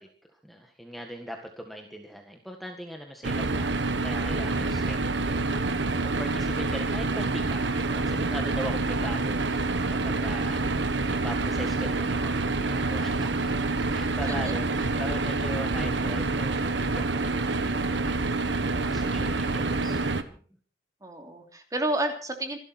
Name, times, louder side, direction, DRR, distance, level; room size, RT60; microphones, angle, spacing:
voice 1, 0.3-3.7 4.0-7.6 7.9-13.5 13.9-18.4 18.7-20.4, equal, ahead, 3 dB, 1.8 m, -40 dB
sound 1, 3.2-20.2, right 3 dB, 85° right, 1.4 m, -27 dB
voice 2, 21.0-22.6, right 1 dB, 20° right, 4 dB, 3.1 m, -30 dB
26.5 x 12.0 x 4.4 m, 0.41 s
head